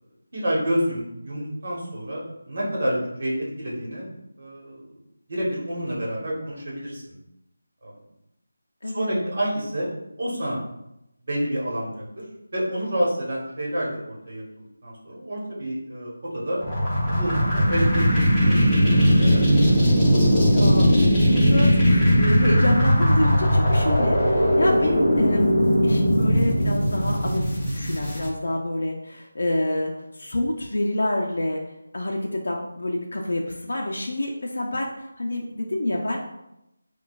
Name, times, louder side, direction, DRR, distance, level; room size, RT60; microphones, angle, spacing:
voice 1, 0.3-4.1 4.4-5.0 5.3-7.2 7.8-7.9 8.9-9.9 10.2-10.6 11.3-12.2 12.5-16.6 17.1-19.4, equal, 45° right, -5 dB, 1.1 m, -29 dB
voice 2, 8.8-9.3 20.2-31.6 31.9-36.2, left 1 dB, 70° left, -1 dB, 0.5 m, -27 dB
sound 1, 16.6-28.3, equal, 5° left, 0.7 m, -19 dB
5.9 x 2.3 x 2.4 m, 0.86 s
figure-of-eight pair, 175°, 0 cm